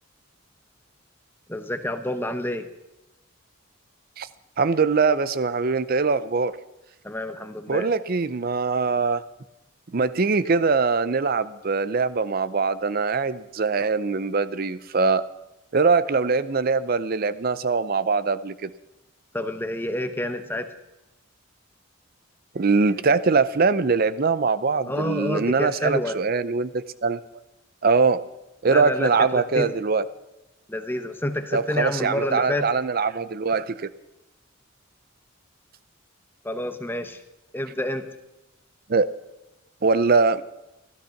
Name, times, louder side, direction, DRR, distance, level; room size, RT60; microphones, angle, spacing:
voice 1, 1.5-2.7 7.0-7.9 19.3-20.7 24.9-26.2 28.6-29.7 30.7-32.7 36.4-37.2 37.5-38.0, left 1 dB, 10° left, 9 dB, 0.8 m, -28 dB
voice 2, 4.6-6.5 7.7-9.2 9.9-15.2 15.7-18.7 22.5-27.2 27.8-28.2 28.6-30.0 31.5-33.9 38.9-39.1 39.8-40.4, right 4 dB, 45° right, 14 dB, 0.5 m, -22 dB
15.0 x 13.0 x 5.8 m, 0.96 s
head